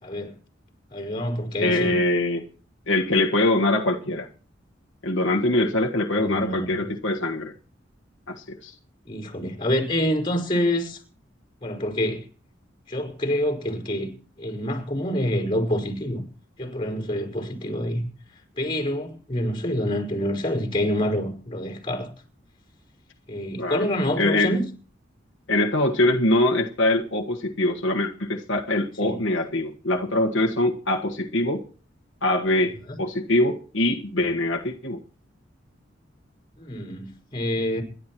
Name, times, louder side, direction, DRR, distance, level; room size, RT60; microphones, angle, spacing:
voice 1, 0.0-0.3 0.9-2.0 6.1-6.9 9.1-11.0 11.6-12.2 12.9-14.1 14.4-16.2 16.6-18.1 18.6-22.1 23.3-24.6 29.0-29.2 32.9-33.0 36.6-37.1 37.3-37.8, left 1 dB, 30° left, 5.1 m, -27 dB
voice 2, 1.6-2.5 2.9-4.3 5.0-7.5 8.3-8.7 23.6-23.9 24.2-24.6 25.5-31.6 32.2-35.0, left 1 dB, 80° left, 1.6 m, -23 dB
27.5 x 11.5 x 3.1 m
head